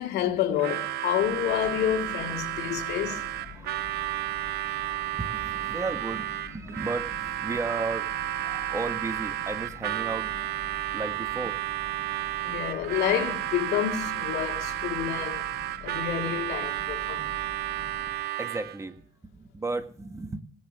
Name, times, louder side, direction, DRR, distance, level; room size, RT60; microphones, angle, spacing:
voice 1, 0.0-3.2 12.4-15.5 15.8-17.3, left 11 dB, 80° left, 2.6 m, -29 dB
Harmonica, 0.6-18.8, right 14 dB, 70° right, 0.8 m, -32 dB
sound 1, 1.2-18.2, left 5 dB, 45° left, 6.1 m, -47 dB
voice 2, 2.6-11.6 17.5-20.4, right 3 dB, 15° right, 1.6 m, -36 dB
18.0 x 10.5 x 6.2 m
cardioid pair, 110°, 17 cm